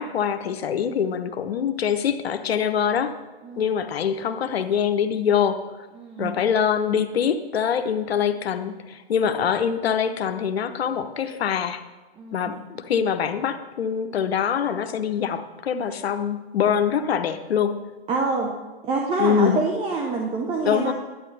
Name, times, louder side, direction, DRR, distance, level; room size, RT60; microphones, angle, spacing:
voice 1, 0.0-3.1 3.6-5.8 6.2-11.8 12.3-12.6 12.9-17.8 19.2-19.6 20.6-20.9, left 7 dB, 85° left, 10 dB, 0.8 m, -24 dB
voice 2, 3.4-3.8 5.9-6.3 9.1-9.3 12.2-12.5 18.1-18.5 18.8-20.9, right 3 dB, 20° right, 0 dB, 1.0 m, -26 dB
11.0 x 9.4 x 3.3 m, 1.2 s
hypercardioid pair, 135°, 30 cm